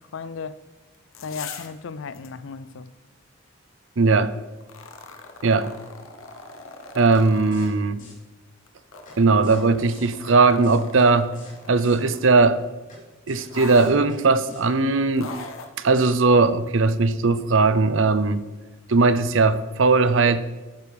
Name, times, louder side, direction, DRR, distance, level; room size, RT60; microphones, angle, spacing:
voice 1, 0.1-0.6 1.2-2.9, left 5 dB, 70° left, 0.4 m, -35 dB
sound 1, 0.9-1.8 2.1-2.3 4.6-7.7 8.7-12.3 13.5-13.9 15.1-15.7 16.7-16.8, left 4 dB, 90° left, 1.0 m, -41 dB
voice 2, 4.0-4.4 5.4-5.7 6.9-8.0 9.2-11.3 11.7-12.6 13.3-15.3 15.8-18.4 18.9-20.4, right 3 dB, 70° right, 0.6 m, -19 dB
sound 2, 7.1-7.2 7.5-7.7 8.0-8.1 9.1-9.2 9.4-9.6 9.9-10.3 10.6-11.1 11.3-11.5 11.8-12.0 12.9-13.0 13.3-13.5 13.7-14.2 14.5-14.6, left 2 dB, 40° left, 3.4 m, -46 dB
13.0 x 9.2 x 3.4 m
head